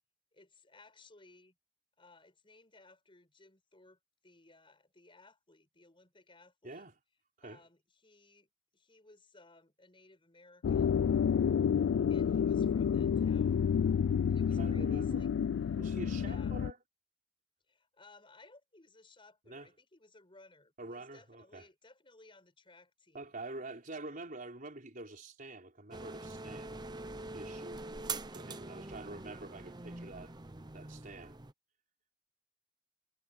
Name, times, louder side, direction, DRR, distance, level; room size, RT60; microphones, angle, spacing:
voice 1, 0.3-1.6 2.0-6.9 7.4-11.0 12.1-13.8 14.3-15.3 16.2-16.6 17.7-23.3, left 3 dB, 30° left, 6.0 m, -61 dB
voice 2, 6.6-6.9 7.4-7.6 14.4-15.3 15.8-16.8 19.5-19.7 20.8-21.7 23.1-26.7 27.3-27.8 28.3-30.4 30.7-31.4, right 2 dB, 45° right, 4.4 m, -46 dB
sound 1, 10.6-16.7, left 7 dB, 80° left, 0.3 m, -29 dB
sound 2, 25.9-31.5, right 3 dB, 25° right, 0.8 m, -44 dB
head